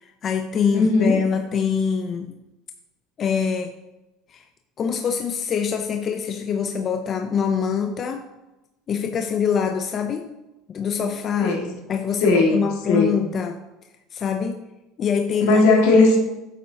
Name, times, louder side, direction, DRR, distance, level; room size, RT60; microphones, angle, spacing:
voice 1, 0.0-2.4 3.2-3.7 4.3-4.4 4.8-8.3 8.9-10.3 10.7-11.6 11.9-13.6 14.1-14.6 15.0-15.6, left 6 dB, 30° left, 5 dB, 0.5 m, -24 dB
voice 2, 0.7-1.2 11.4-11.7 12.2-13.2 15.4-16.2, left 3 dB, 80° left, 0 dB, 1.9 m, -17 dB
9.0 x 7.5 x 2.8 m, 1.0 s
cardioid pair, 150°, 0 cm